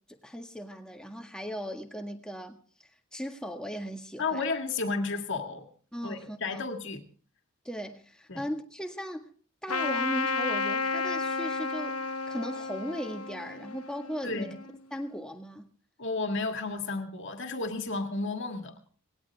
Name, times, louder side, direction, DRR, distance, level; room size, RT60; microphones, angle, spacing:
voice 1, 0.2-2.6 3.1-4.4 5.9-6.6 7.6-9.3 9.6-14.5 14.9-15.6, equal, 5° left, 1.6 m, -37 dB
voice 2, 4.2-5.7 6.0-7.0 8.3-8.4 14.2-14.6 16.0-18.7, left 3 dB, 55° left, 2.0 m, -32 dB
Trumpet, 9.7-14.7, left 4 dB, 85° left, 1.1 m, -32 dB
19.0 x 17.5 x 3.5 m
head